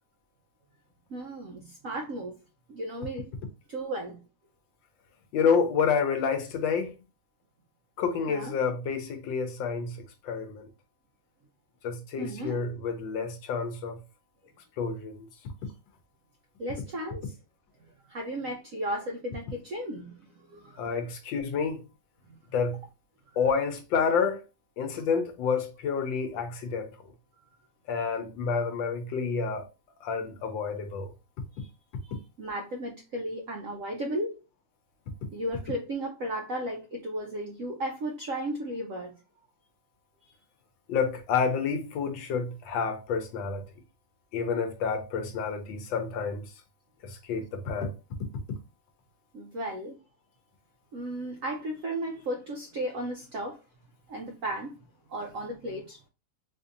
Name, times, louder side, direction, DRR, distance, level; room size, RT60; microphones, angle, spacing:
voice 1, 1.1-2.3 2.7-3.3 3.7-4.2 8.3-8.5 12.2-12.6 16.6-17.3 18.1-20.9 22.3-22.4 31.5-31.7 32.0-34.4 35.3-39.2 49.3-49.9 50.9-53.6 54.1-54.7 55.1-56.0, right 1 dB, 85° right, 0.7 m, -35 dB
voice 2, 5.3-6.9 8.0-10.7 11.8-14.0 14.8-15.3 20.8-21.8 22.5-22.8 23.4-24.4 24.8-26.9 27.9-29.6 30.0-31.1 40.9-43.6 44.3-46.4 47.0-47.9, left 5 dB, 75° left, 1.3 m, -29 dB
4.2 x 2.6 x 2.5 m
omnidirectional pair, 2.1 m